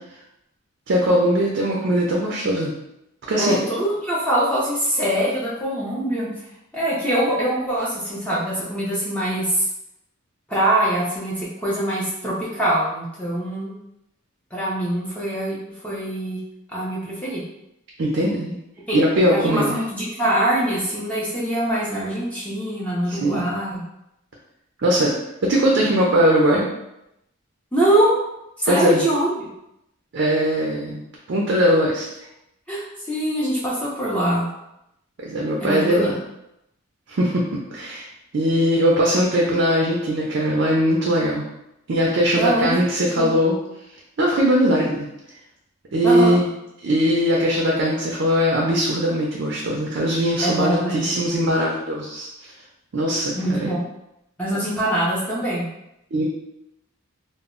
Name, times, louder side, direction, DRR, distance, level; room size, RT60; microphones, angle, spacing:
voice 1, 0.9-2.7 3.3-3.6 18.0-18.6 18.9-19.7 23.1-23.5 24.8-25.1 25.4-26.7 28.7-29.0 30.1-31.0 31.3-32.1 35.2-36.2 37.1-37.4 37.7-38.1 38.3-41.4 41.9-43.6 44.2-45.1 45.9-46.5 46.8-52.3 52.9-53.7 56.1-56.2, equal, 55° right, -3 dB, 0.4 m, -20 dB
voice 2, 3.4-6.3 6.7-9.7 10.5-13.7 14.5-15.6 15.8-16.4 16.7-17.4 18.9-19.0 19.3-23.8 27.7-28.2 28.6-29.5 32.7-34.5 35.6-36.1 42.3-42.7 43.2-43.3 46.0-46.4 50.4-51.0 53.3-53.8 54.4-55.7, right 1 dB, 5° left, -7 dB, 0.4 m, -23 dB
2.0 x 2.0 x 3.6 m, 0.84 s
head